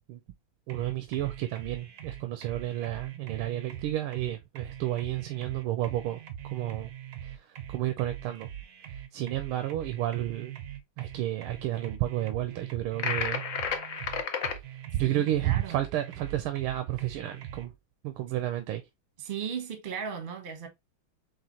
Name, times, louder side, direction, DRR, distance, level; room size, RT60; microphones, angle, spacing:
sound 1, 0.7-17.7, right 11 dB, 65° right, 0.8 m, -42 dB
voice 1, 0.7-6.9 7.2-8.5 9.1-10.6 11.0-13.4 13.8-14.2 14.9-17.7 18.0-18.8, right 13 dB, 90° right, 1.5 m, -31 dB
sound 2, 13.0-14.6, left 6 dB, 80° left, 0.7 m, -31 dB
voice 2, 15.0-15.9 19.2-20.7, right 7 dB, 40° right, 0.8 m, -36 dB
4.9 x 3.2 x 2.9 m
omnidirectional pair, 2.3 m